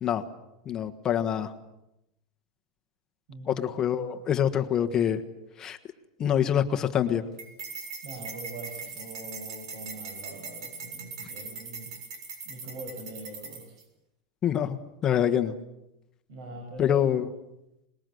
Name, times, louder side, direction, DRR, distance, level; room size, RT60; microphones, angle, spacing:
voice 1, 0.6-1.5 3.5-5.2 5.6-5.8 6.2-7.2 14.4-15.6 16.8-17.3, left 9 dB, 20° left, 8 dB, 1.3 m, -25 dB
voice 2, 3.3-3.6 8.0-11.9 12.4-13.8 16.3-17.1, right 2 dB, 50° right, 2 dB, 7.2 m, -42 dB
mug ringing spoon mixing, 7.4-13.8, right 4 dB, 80° right, 7.1 m, -40 dB
27.0 x 21.0 x 7.9 m, 0.88 s
supercardioid pair, 165°, 3 cm